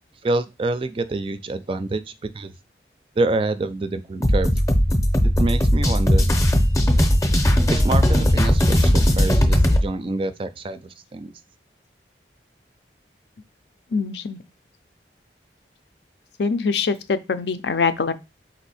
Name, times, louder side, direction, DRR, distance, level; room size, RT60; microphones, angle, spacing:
voice 1, 0.2-2.0 2.3-2.5 3.2-4.5 5.4-6.2 7.7-11.3, right 2 dB, 30° right, 12 dB, 0.3 m, -26 dB
sound 1, 4.2-9.8, equal, 20° left, 0.6 m, -18 dB
voice 2, 13.9-14.4 16.4-18.1, left 4 dB, 75° left, 11 dB, 0.5 m, -23 dB
4.3 x 2.6 x 4.1 m, 0.26 s
head